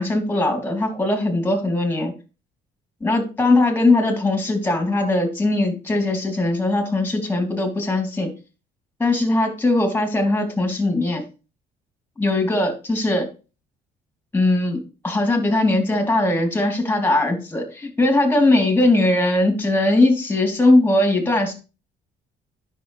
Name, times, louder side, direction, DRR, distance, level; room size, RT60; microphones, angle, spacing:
voice 1, 0.0-2.1 3.0-8.3 9.0-11.2 12.2-13.3 14.3-21.5, left 2 dB, 10° left, 3 dB, 2.9 m, -20 dB
10.5 x 6.2 x 3.1 m, 0.32 s
cardioid pair, 110°, 17 cm